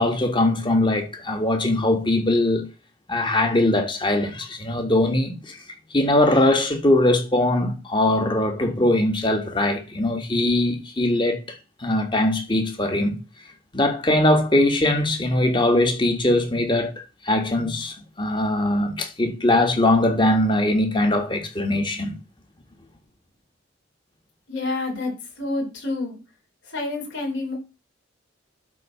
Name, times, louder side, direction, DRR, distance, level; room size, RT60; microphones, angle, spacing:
voice 1, 0.0-2.6 3.1-5.6 5.9-11.4 11.8-13.2 13.7-16.9 17.2-22.1, left 1 dB, 25° left, 1.7 m, -21 dB
voice 2, 24.5-26.2 26.6-27.5, left 2 dB, 65° left, 4.6 m, -28 dB
12.0 x 4.2 x 5.7 m
head